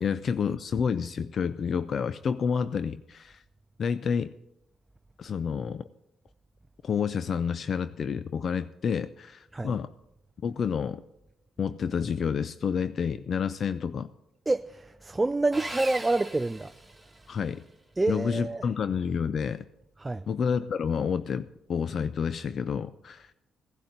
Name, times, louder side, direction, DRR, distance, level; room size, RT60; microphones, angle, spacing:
voice 1, 0.0-3.4 3.8-4.3 5.2-5.9 6.8-9.9 10.4-11.0 11.6-14.1 17.3-17.6 18.1-19.6 20.3-23.3, left 6 dB, 55° left, 0.5 m, -29 dB
voice 2, 14.5-16.7 18.0-18.7 20.0-20.3, right 2 dB, 15° right, 0.3 m, -27 dB
Sawing, 15.5-17.4, right 2 dB, ahead, 2.2 m, -39 dB
16.0 x 11.5 x 4.0 m
cardioid pair, 90°, 0 cm